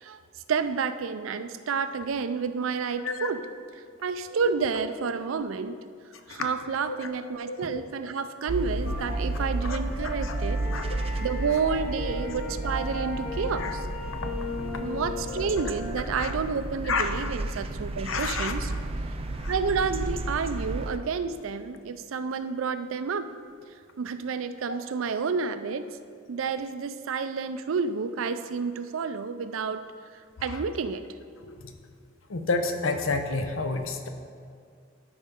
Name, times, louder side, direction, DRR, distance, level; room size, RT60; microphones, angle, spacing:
voice 1, 0.5-3.4 4.0-5.8 6.3-10.6 11.2-13.8 14.8-18.7 19.5-23.3 24.0-25.9 26.3-29.9 30.4-31.0, right 5 dB, 90° right, 11 dB, 0.4 m, -30 dB
voice 2, 3.0-3.3 4.4-4.5 6.3-6.5 6.9-7.1 7.4-7.8 9.1-9.2 9.6-9.8 10.0-10.3 10.7-10.8 13.5-13.7 14.2-14.3 16.1-16.3 16.8-17.3 18.0-18.5 19.4-19.5 24.7-24.8 30.5-30.6 31.4-31.8 32.3-34.1, left 3 dB, 80° left, 6 dB, 0.7 m, -30 dB
sound 1, 8.5-21.0, right 2 dB, 30° right, 0.4 m, -32 dB
sound 2, 8.8-15.9, left 3 dB, 50° left, 1.2 m, -37 dB
12.5 x 5.2 x 3.6 m, 2.2 s
head